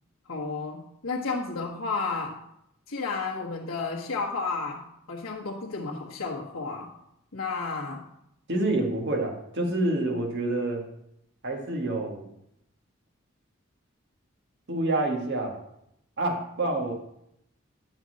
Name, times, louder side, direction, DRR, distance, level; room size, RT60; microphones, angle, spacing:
voice 1, 0.3-2.4 2.9-6.9 7.3-8.0, left 4 dB, 75° left, -7 dB, 1.4 m, -32 dB
voice 2, 8.5-10.8 11.4-12.3 14.7-15.6 16.2-16.9, right 2 dB, 55° right, 2 dB, 1.7 m, -27 dB
10.5 x 4.2 x 7.6 m, 0.76 s
head